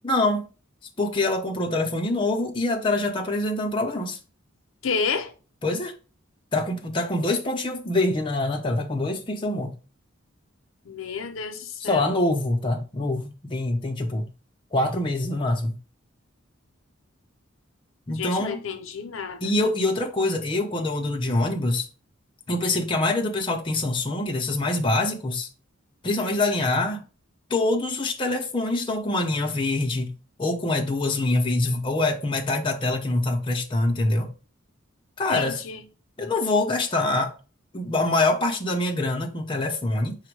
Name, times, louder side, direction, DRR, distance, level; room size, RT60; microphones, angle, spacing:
voice 1, 0.0-0.5 1.0-4.2 5.6-5.9 6.5-9.7 11.8-14.3 14.7-15.8 18.1-18.6 19.4-21.9 22.5-25.5 26.0-27.0 27.5-30.1 30.4-34.3 35.2-35.6 36.2-37.3 37.7-40.1, left 2 dB, 25° left, 0.6 m, -25 dB
voice 2, 4.8-5.3 10.9-12.1 18.2-19.5 35.3-35.8, left 5 dB, 75° left, 0.6 m, -30 dB
5.0 x 2.2 x 4.6 m
head